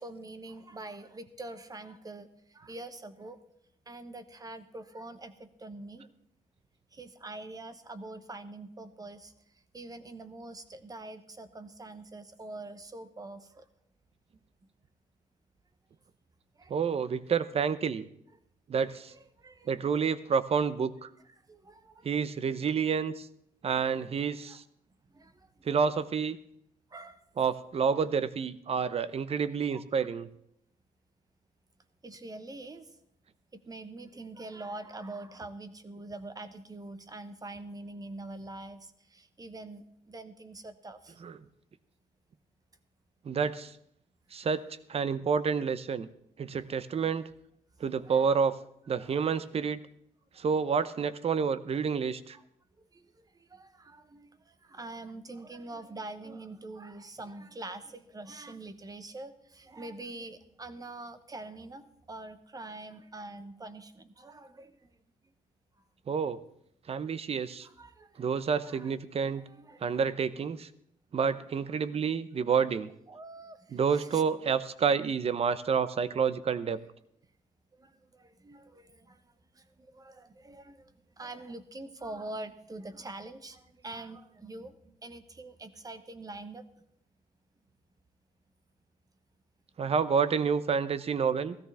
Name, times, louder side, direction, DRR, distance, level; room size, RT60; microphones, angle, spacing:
voice 1, 0.0-3.4 3.9-6.1 6.9-13.7 16.5-16.9 18.9-19.7 21.3-22.1 24.5-24.6 25.1-25.7 26.9-27.2 29.7-30.1 32.0-33.0 33.5-41.2 47.8-48.3 49.0-49.3 50.3-50.4 52.3-52.5 52.8-65.0 67.6-68.2 68.6-68.9 69.2-70.0 73.1-74.2 76.5-76.6 77.7-86.6, right 2 dB, 25° right, 11 dB, 1.1 m, -45 dB
voice 2, 16.7-18.1 18.7-19.1 19.7-21.1 22.0-23.3 23.6-24.6 25.6-26.4 27.4-30.3 41.2-41.3 43.2-43.7 44.3-44.6 44.9-46.1 46.4-47.3 47.8-48.5 48.9-49.8 50.4-52.4 66.1-66.4 66.9-67.7 68.2-69.4 69.8-70.7 71.1-72.9 73.7-76.8 89.8-91.6, right 6 dB, 45° right, 15 dB, 0.8 m, -29 dB
16.0 x 14.0 x 3.5 m, 0.72 s
cardioid pair, 90°, 15 cm